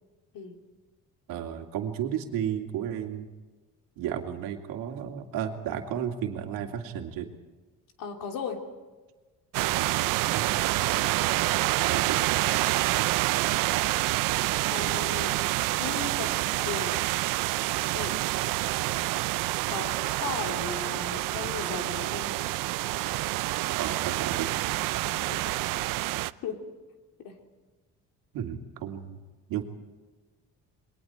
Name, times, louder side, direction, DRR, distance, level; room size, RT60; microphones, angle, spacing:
voice 1, 1.3-3.3 4.0-7.3 9.6-9.9 10.2-10.5 11.9-12.3 23.8-24.5 28.3-29.2 29.5-29.6, right 9 dB, 90° right, 4 dB, 2.4 m, -33 dB
voice 2, 8.0-8.6 14.7-15.4 15.8-16.3 16.6-17.0 17.8-18.2 19.7-22.3 25.0-25.8 26.4-26.6 27.2-27.3, left 5 dB, 75° left, 3 dB, 3.2 m, -37 dB
sound 1, 9.5-26.3, right 18 dB, 70° right, 0.6 m, -27 dB
28.0 x 21.5 x 4.4 m, 1.3 s
cardioid pair, 140°, 33 cm